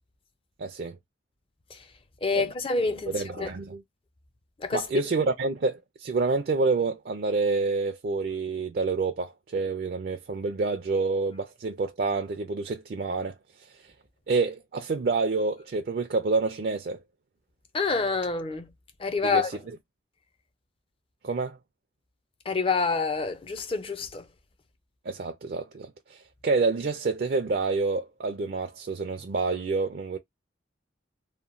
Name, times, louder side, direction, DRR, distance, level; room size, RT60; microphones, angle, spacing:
voice 1, 0.6-1.0 2.4-2.5 3.1-3.8 4.7-13.4 14.3-17.0 19.2-19.4 21.2-21.6 25.1-30.2, right 3 dB, 55° right, 0.4 m, -28 dB
voice 2, 2.2-3.5 4.6-4.9 17.7-18.7 19.0-19.5 22.5-24.3, left 4 dB, 30° left, 0.5 m, -27 dB
2.9 x 2.1 x 2.4 m
head